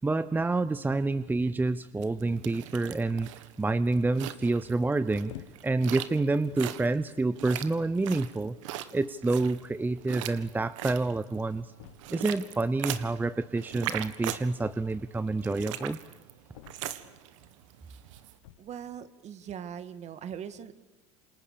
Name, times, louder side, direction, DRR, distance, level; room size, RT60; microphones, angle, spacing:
voice 1, 0.0-3.3 3.6-5.3 5.6-8.6 8.9-11.7 12.1-16.0, right 3 dB, 10° right, 15 dB, 0.8 m, -28 dB
sound 1, 2.0-18.3, right 12 dB, 85° right, 1.8 m, -41 dB
sound 2, 5.3-5.9 6.7-6.8 7.6-7.7 8.0-8.3 9.5-9.6 9.8-9.9 10.1-10.2 11.8-12.3 14.6-15.2 16.5-17.2 18.3-18.8, left 13 dB, 85° left, 1.4 m, -49 dB
voice 2, 18.6-20.7, right 8 dB, 45° right, 12 dB, 2.2 m, -40 dB
29.0 x 27.0 x 6.9 m, 1.1 s
supercardioid pair, 95°, 16 cm